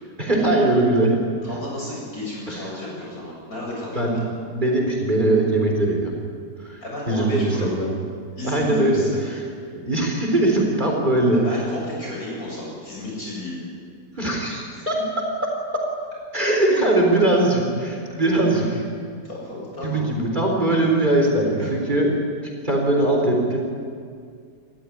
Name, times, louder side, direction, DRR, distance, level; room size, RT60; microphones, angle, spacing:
voice 1, 0.2-1.2 2.5-2.6 3.9-4.2 4.5-6.1 6.6-6.8 7.1-7.9 8.4-9.1 9.4-9.5 9.9-11.4 14.2-15.8 16.3-18.8 19.8-22.1 22.6-23.6, right 1 dB, 25° right, 0 dB, 4.0 m, -21 dB
voice 2, 1.4-4.2 6.8-7.7 8.4-9.2 11.4-13.6 14.7-14.8 18.5-18.7 19.0-20.1 21.6-21.7, left 2 dB, 60° left, -4 dB, 8.3 m, -32 dB
28.5 x 14.0 x 9.9 m, 2.2 s
omnidirectional pair, 1.8 m